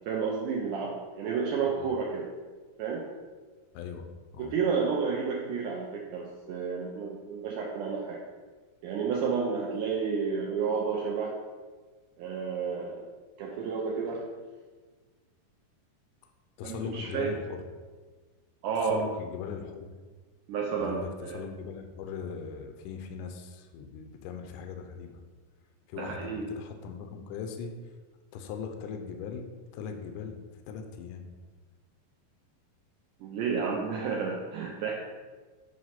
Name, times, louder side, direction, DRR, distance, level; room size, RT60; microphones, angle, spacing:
voice 1, 0.1-2.3 2.8-3.1 4.4-8.2 8.8-11.4 12.2-13.0 13.4-14.3 16.6-17.3 18.6-19.0 20.5-21.4 26.0-26.5 33.2-35.0, right 5 dB, 90° right, -2 dB, 1.8 m, -31 dB
voice 2, 16.6-17.6 18.8-19.9 20.8-25.2 25.9-27.7 28.3-31.3, left 6 dB, 85° left, 5 dB, 1.8 m, -39 dB
7.6 x 3.1 x 5.7 m, 1.4 s
omnidirectional pair, 4.5 m